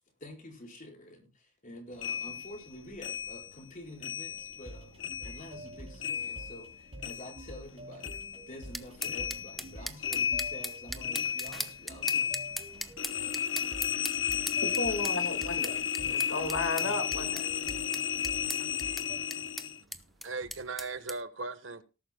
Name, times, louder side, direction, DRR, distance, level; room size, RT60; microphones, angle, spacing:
voice 1, 0.2-12.3 14.9-15.5, left 1 dB, 45° left, 4.7 m, -48 dB
sound 1, 2.0-4.7 5.0-7.7 8.0-19.8, left 7 dB, 65° left, 0.7 m, -34 dB
sound 2, 4.3-19.2, right 1 dB, 35° right, 3.3 m, -49 dB
sound 3, 8.7-21.2, equal, ahead, 0.8 m, -40 dB
voice 2, 14.6-17.5, left 3 dB, 85° left, 1.9 m, -34 dB
voice 3, 19.8-21.8, right 3 dB, 75° right, 1.3 m, -39 dB
18.5 x 12.0 x 2.2 m
head